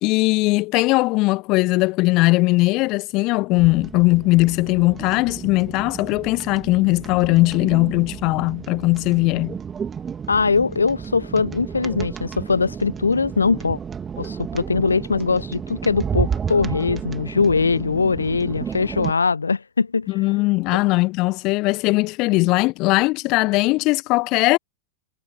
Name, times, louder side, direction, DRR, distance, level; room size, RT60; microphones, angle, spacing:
voice 1, 0.0-9.6 20.1-24.6, left 22 dB, 40° left, 1.0 m, -19 dB
sound 1, 3.5-19.1, right 7 dB, 20° right, 3.0 m, -32 dB
voice 2, 10.3-13.8 14.2-20.1, left 4 dB, 75° left, 0.8 m, -21 dB
figure-of-eight pair, 90°, 0 cm